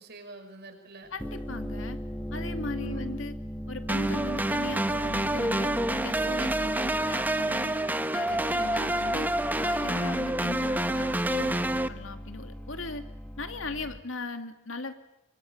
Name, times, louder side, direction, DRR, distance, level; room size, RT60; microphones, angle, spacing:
voice 1, 0.0-1.1 2.8-3.1 8.0-8.7, right 2 dB, 55° right, 5 dB, 5.9 m, -47 dB
sound 1, 1.0-14.0, equal, 5° left, 1.6 m, -39 dB
voice 2, 1.1-2.0 2.3-3.4 3.7-7.8 8.1-9.3 9.6-13.0 13.4-14.9, left 3 dB, 90° left, 7 dB, 2.5 m, -38 dB
sound 2, 3.9-11.9, right 1 dB, 10° right, 1.0 m, -28 dB
25.0 x 24.5 x 9.1 m, 0.84 s
head